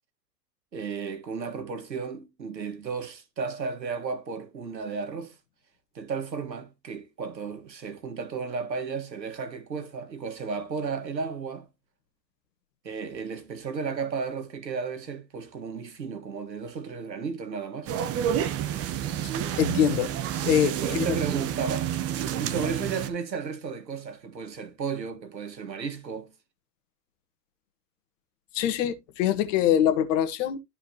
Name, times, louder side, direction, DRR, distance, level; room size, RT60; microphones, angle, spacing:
voice 1, 0.7-5.4 5.9-11.7 12.8-17.9 20.6-26.3, right 5 dB, 90° right, 1.9 m, -34 dB
sound 1, 17.9-23.1, right 10 dB, 30° right, 1.2 m, -29 dB
voice 2, 19.6-21.2 28.5-30.6, left 10 dB, 50° left, 1.6 m, -24 dB
13.0 x 5.0 x 3.0 m
hypercardioid pair, 110°, 49 cm